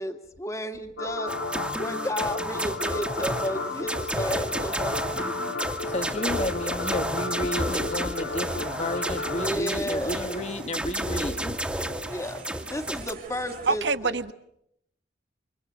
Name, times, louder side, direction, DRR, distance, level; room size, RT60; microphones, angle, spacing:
voice 1, 0.0-1.3 1.8-5.5 9.3-10.4 12.0-14.2, equal, 15° left, 2.1 m, -33 dB
sound 1, 1.0-9.5, left 3 dB, 80° left, 1.1 m, -33 dB
sound 2, 1.3-13.1, right 1 dB, 5° right, 2.0 m, -32 dB
sound 3, 3.5-13.8, right 3 dB, 50° right, 2.7 m, -46 dB
voice 2, 5.8-11.6, left 1 dB, 35° left, 1.6 m, -32 dB
voice 3, 13.7-14.3, right 4 dB, 70° right, 1.3 m, -25 dB
29.0 x 27.0 x 6.3 m
head